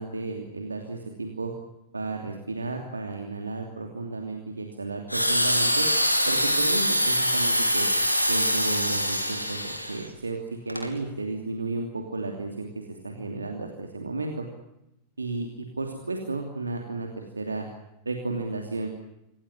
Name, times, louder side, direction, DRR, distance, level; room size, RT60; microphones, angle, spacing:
voice 1, 0.0-1.5 1.9-5.9 6.3-7.9 8.3-10.4 10.6-14.4 15.2-17.7 18.0-18.9, right 3 dB, 80° right, 3 dB, 2.8 m, -33 dB
sound 1, 5.1-10.1 10.7-10.9, equal, 90° left, 2.8 m, -24 dB
26.0 x 18.0 x 9.9 m, 0.86 s
figure-of-eight pair, 90°, 0 cm